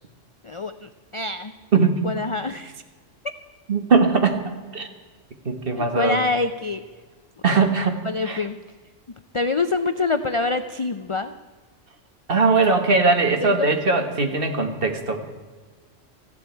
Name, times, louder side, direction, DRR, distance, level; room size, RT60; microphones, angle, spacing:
voice 1, 0.4-1.5 2.0-2.8 5.7-6.8 8.0-8.6 9.3-11.3 13.4-13.7, left 3 dB, 45° left, 9 dB, 0.4 m, -26 dB
voice 2, 1.7-2.0 3.7-4.9 5.4-6.2 7.4-8.4 12.3-15.3, right 4 dB, 50° right, 6 dB, 1.6 m, -20 dB
18.5 x 15.0 x 4.5 m, 1.4 s
omnidirectional pair, 1.3 m